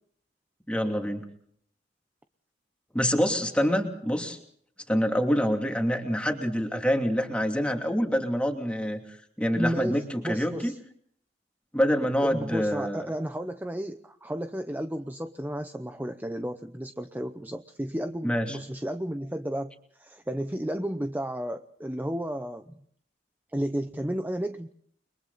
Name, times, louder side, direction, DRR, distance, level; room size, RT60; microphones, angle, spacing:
voice 1, 0.7-1.2 2.9-4.4 4.9-9.0 9.4-10.7 11.7-13.1 18.2-18.6, equal, 5° left, 3 dB, 2.8 m, -26 dB
voice 2, 9.5-10.8 12.2-22.7 23.5-24.7, equal, 10° right, 8 dB, 0.8 m, -33 dB
30.0 x 23.0 x 4.1 m, 0.63 s
head